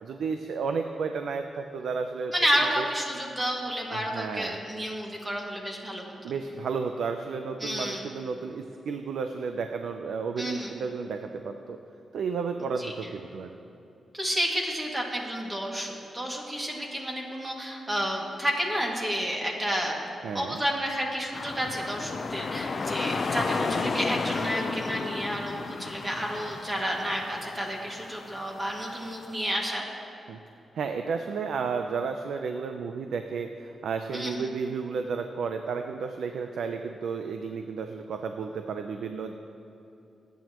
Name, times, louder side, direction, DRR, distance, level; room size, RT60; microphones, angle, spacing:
voice 1, 0.0-2.3 2.8-2.9 3.9-4.6 6.2-11.8 12.1-13.5 20.2-20.6 30.3-30.4 30.7-39.3, right 5 dB, 85° right, 6 dB, 0.6 m, -32 dB
voice 2, 2.3-6.1 7.6-8.1 10.4-10.8 12.8-12.9 14.1-20.0 20.3-29.8 34.1-34.5, equal, 20° right, -2 dB, 2.2 m, -30 dB
sound 1, 21.3-29.3, left 4 dB, 45° left, 0.6 m, -33 dB
26.5 x 9.4 x 3.1 m, 2.9 s
wide cardioid pair, 110°, 0 cm